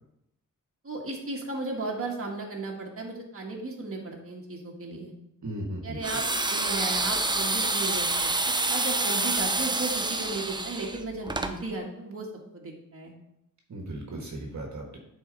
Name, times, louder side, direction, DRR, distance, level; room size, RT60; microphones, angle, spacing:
voice 1, 0.8-5.1 5.8-12.3 12.5-13.1, right 3 dB, 40° right, -1 dB, 1.6 m, -35 dB
voice 2, 5.4-6.0 13.7-15.0, right 1 dB, 55° right, 0 dB, 1.5 m, -36 dB
sound 1, 6.0-11.5, right 2 dB, 15° right, 0.6 m, -27 dB
10.0 x 4.3 x 3.9 m, 0.83 s
wide cardioid pair, 90°, 34 cm